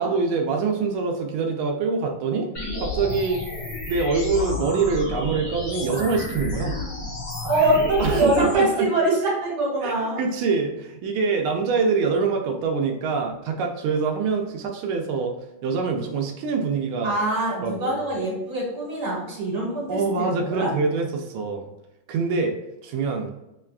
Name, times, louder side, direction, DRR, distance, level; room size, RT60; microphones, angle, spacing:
voice 1, 0.0-2.5 2.8-3.4 3.9-6.8 8.0-8.9 9.8-15.4 15.6-17.2 17.6-18.0 19.9-21.7 22.1-22.5 22.8-23.3, right 4 dB, 85° right, 3 dB, 1.4 m, -25 dB
sound 1, 2.5-8.5, left 3 dB, 45° left, 1.2 m, -31 dB
voice 2, 7.4-10.2 17.0-20.7, right 2 dB, 60° right, -4 dB, 1.8 m, -24 dB
5.9 x 2.2 x 2.3 m, 0.92 s
omnidirectional pair, 2.3 m